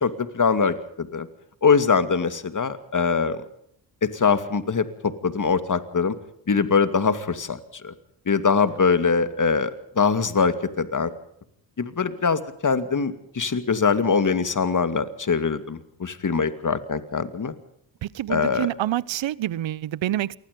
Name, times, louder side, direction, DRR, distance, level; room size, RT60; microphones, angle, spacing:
voice 1, 0.0-1.3 1.6-3.4 4.0-6.1 6.5-7.9 8.3-11.1 11.8-17.5 18.3-18.7, left 5 dB, 40° left, 2.6 m, -23 dB
voice 2, 18.0-20.3, right 13 dB, 65° right, 1.0 m, -27 dB
28.0 x 20.0 x 5.4 m
supercardioid pair, 50°, 48 cm